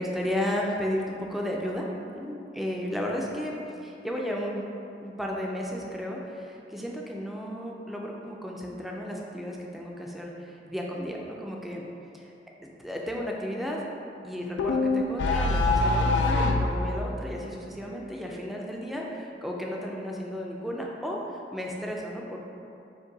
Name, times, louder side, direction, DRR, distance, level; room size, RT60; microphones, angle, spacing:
voice 1, 0.0-3.6 3.8-4.6 5.0-11.9 12.1-12.3 12.6-13.8 14.2-22.4, equal, ahead, -2 dB, 0.4 m, -33 dB
sound 1, 14.6-16.7, left 2 dB, 80° left, 0.3 m, -23 dB
5.2 x 2.2 x 3.9 m, 2.6 s
head